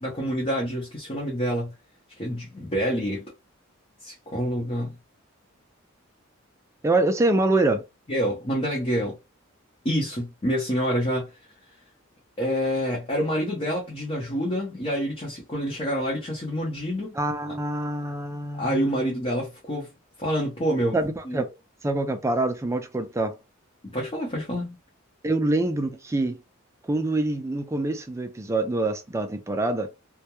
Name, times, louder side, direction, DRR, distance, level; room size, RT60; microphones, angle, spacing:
voice 1, 0.0-1.7 2.2-3.2 4.0-5.0 8.1-9.2 9.8-11.3 12.4-17.1 18.5-19.9 20.2-21.0 21.3-21.4 23.9-24.8, equal, 30° left, 0.7 m, -27 dB
voice 2, 6.8-7.8 17.1-19.1 20.9-21.5 21.8-23.4 25.2-26.4 26.8-29.9, right 2 dB, 15° right, 0.3 m, -25 dB
2.2 x 2.1 x 2.9 m
head